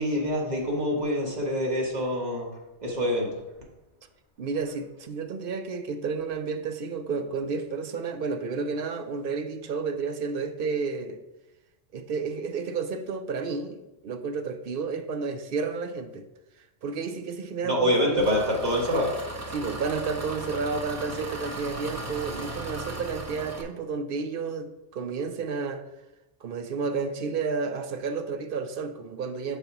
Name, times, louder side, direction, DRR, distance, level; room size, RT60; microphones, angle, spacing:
voice 1, 0.0-2.5 2.8-3.3 17.6-19.1, equal, 40° right, 1.7 m, -25 dB
voice 2, 4.4-11.2 11.9-16.3 16.8-18.4 19.5-25.8 26.4-29.6, right 4 dB, 60° right, 0.7 m, -31 dB
Engine, 18.2-23.6, right 2 dB, 20° right, 0.5 m, -37 dB
6.7 x 4.1 x 5.9 m
omnidirectional pair, 1.2 m